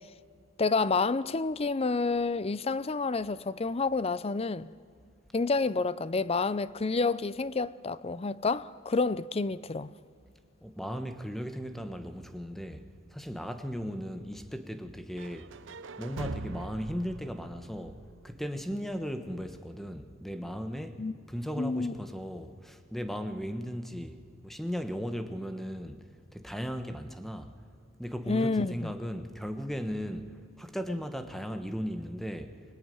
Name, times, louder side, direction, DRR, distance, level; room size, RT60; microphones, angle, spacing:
voice 1, 0.6-4.7 5.3-9.9 21.0-21.1 21.6-21.9 28.3-28.9, left 3 dB, 30° left, 0.5 m, -29 dB
voice 2, 10.6-15.5 16.0-27.5 28.0-32.6, equal, ahead, 1.3 m, -37 dB
sound 1, 15.2-19.1, right 3 dB, 80° right, 0.7 m, -43 dB
25.0 x 19.5 x 9.4 m
head